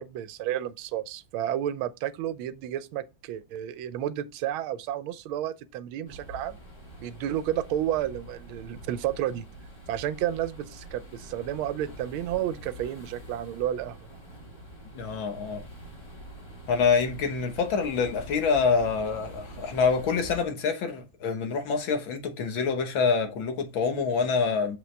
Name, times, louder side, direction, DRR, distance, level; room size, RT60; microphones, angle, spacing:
voice 1, 0.0-6.6 7.0-9.5 9.9-14.0, right 11 dB, 80° right, 1.4 m, -31 dB
sound 1, 6.1-20.4, equal, 15° left, 2.3 m, -45 dB
voice 2, 14.9-15.6 16.7-24.8, left 5 dB, 70° left, 1.9 m, -26 dB
6.8 x 5.1 x 3.3 m
omnidirectional pair, 2.3 m